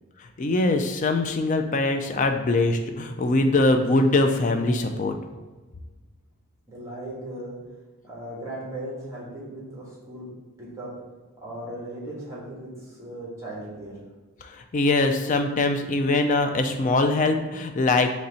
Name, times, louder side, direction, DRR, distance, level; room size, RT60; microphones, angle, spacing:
voice 1, 0.4-5.2 14.4-18.1, left 2 dB, 35° left, 6 dB, 0.3 m, -22 dB
voice 2, 6.7-7.5 8.0-10.3 10.6-10.9 11.4-14.0, right 1 dB, 15° right, -6 dB, 1.4 m, -37 dB
4.3 x 3.1 x 4.0 m, 1.2 s
head